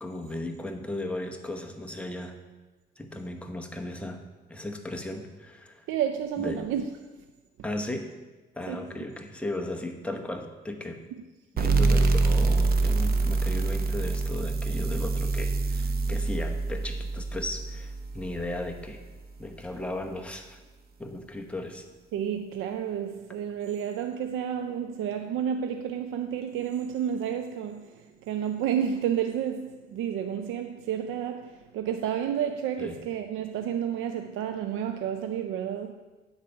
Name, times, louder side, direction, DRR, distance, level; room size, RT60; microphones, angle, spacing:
voice 1, 0.0-2.4 3.0-4.2 4.5-5.9 6.4-6.7 7.6-8.1 8.6-11.0 11.6-19.0 19.4-20.6 21.0-21.9 32.8-33.0, left 1 dB, 5° left, 1.0 m, -36 dB
voice 2, 5.9-6.9 8.7-8.9 22.1-35.9, right 9 dB, 85° right, 0.5 m, -31 dB
sound 1, 11.6-18.8, right 3 dB, 50° right, 0.8 m, -26 dB
9.1 x 4.0 x 6.6 m
cardioid pair, 90°, 20 cm